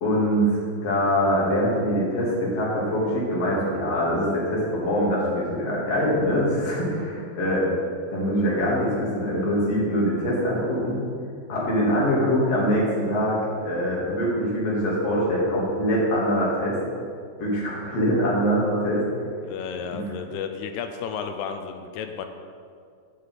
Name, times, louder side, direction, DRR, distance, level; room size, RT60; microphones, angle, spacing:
voice 1, 0.0-7.6 8.1-11.0 11.5-16.8 17.4-19.0 19.9-20.0, equal, 45° left, -6 dB, 2.9 m, -23 dB
voice 2, 19.4-22.3, left 6 dB, 80° left, 7 dB, 2.4 m, -32 dB
6.9 x 6.7 x 7.5 m, 2.3 s
omnidirectional pair, 5.0 m